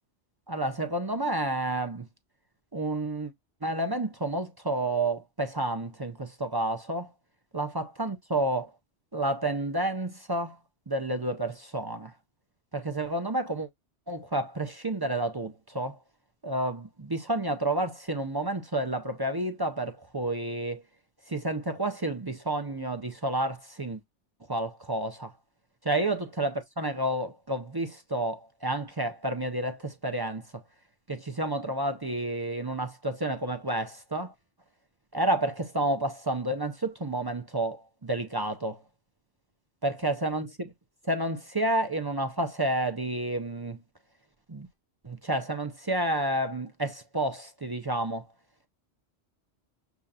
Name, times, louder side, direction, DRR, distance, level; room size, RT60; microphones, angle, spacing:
voice 1, 0.5-2.1 2.7-3.3 3.6-7.1 7.5-8.7 9.1-10.6 10.9-12.1 12.7-13.7 14.1-16.0 16.4-20.8 21.3-24.0 24.5-25.3 25.8-30.5 31.1-34.3 35.1-38.8 39.8-40.7 41.1-43.8 44.5-44.7 45.0-48.3, right 1 dB, 30° right, 0.4 m, -30 dB
7.0 x 2.8 x 2.4 m
omnidirectional pair, 1.2 m